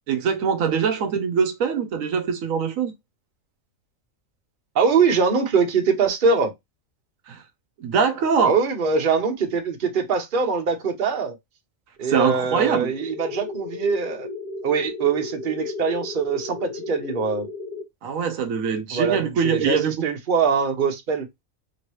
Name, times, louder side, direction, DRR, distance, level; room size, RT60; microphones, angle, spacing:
voice 1, 0.1-2.9 7.3-7.4 7.8-8.6 12.0-12.9 18.0-20.1, right 6 dB, 80° right, 1.0 m, -23 dB
voice 2, 4.7-6.5 8.4-11.4 12.0-14.3 14.6-17.5 18.9-21.3, right 5 dB, 45° right, 0.9 m, -23 dB
sound 1, 12.8-17.8, left 3 dB, 25° left, 1.0 m, -34 dB
3.0 x 2.9 x 3.0 m
omnidirectional pair, 1.4 m